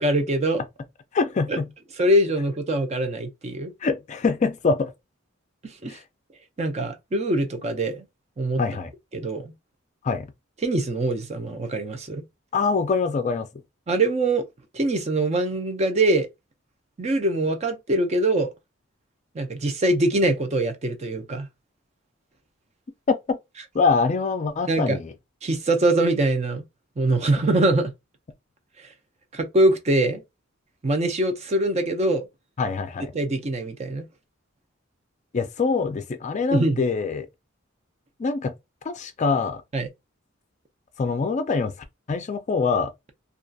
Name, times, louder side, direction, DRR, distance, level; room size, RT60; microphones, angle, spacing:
voice 1, 0.0-0.6 1.5-1.6 2.0-3.7 5.8-6.0 6.6-8.0 8.4-8.6 9.1-9.5 10.6-12.2 13.9-14.4 14.7-16.3 17.0-18.5 19.4-21.5 24.7-25.0 25.4-26.6 27.0-27.9 29.3-30.2 30.8-32.2 33.1-34.1 36.5-36.8 39.7-39.9, right 1 dB, 35° right, 0.5 m, -23 dB
voice 2, 1.1-1.7 3.8-4.9 5.9-6.0 8.6-8.9 10.0-10.3 12.5-13.5 23.1-23.4 23.7-25.1 32.6-33.1 35.3-37.3 38.2-38.5 38.9-39.6 41.0-41.7 42.1-42.9, left 4 dB, 35° left, 0.4 m, -24 dB
2.6 x 2.4 x 2.3 m
head